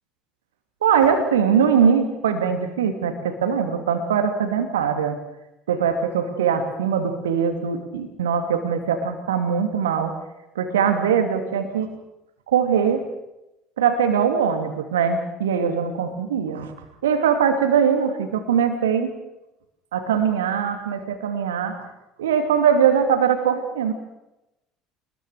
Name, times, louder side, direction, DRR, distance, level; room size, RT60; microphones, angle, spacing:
voice 1, 0.8-5.2 5.7-10.2 10.5-11.9 12.5-13.0 13.8-16.7 17.0-19.2 19.9-21.9 22.2-23.9, right 7 dB, 70° right, 7 dB, 2.5 m, -21 dB
25.0 x 21.0 x 6.6 m, 0.93 s
figure-of-eight pair, 65°, 0 cm